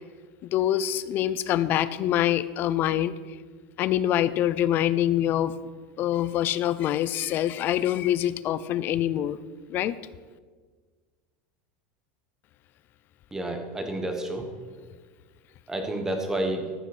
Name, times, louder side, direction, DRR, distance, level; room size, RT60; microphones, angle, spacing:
voice 1, 0.4-3.2 3.8-5.5 6.0-9.4 9.7-10.0, left 12 dB, 40° left, 15 dB, 0.5 m, -25 dB
voice 2, 13.3-14.4 15.7-16.7, right 1 dB, 10° right, 5 dB, 1.4 m, -30 dB
14.0 x 6.0 x 6.1 m, 1.5 s
supercardioid pair, 150°, 5 cm